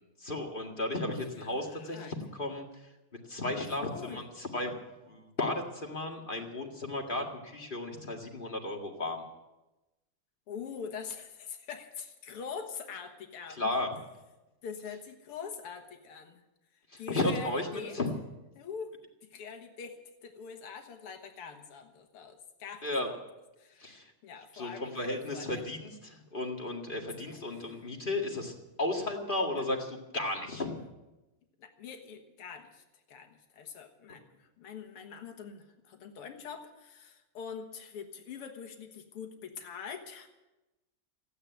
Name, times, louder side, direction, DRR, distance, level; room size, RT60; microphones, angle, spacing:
voice 1, 0.2-2.9 3.3-4.7 5.1-9.2 13.6-13.9 16.9-18.1 22.8-23.1 23.8-24.1 24.5-28.5 28.8-30.8, left 2 dB, 25° left, 1 dB, 2.0 m, -34 dB
voice 2, 1.3-2.1 3.8-4.3 10.5-13.7 14.6-16.4 16.7-18.0 18.6-23.2 23.6-24.0 24.2-25.7 27.3-27.8 29.6-29.7 30.6-30.9 31.6-40.3, left 6 dB, 85° left, 5 dB, 2.4 m, -44 dB
15.5 x 9.6 x 9.2 m, 1.0 s
omnidirectional pair, 2.4 m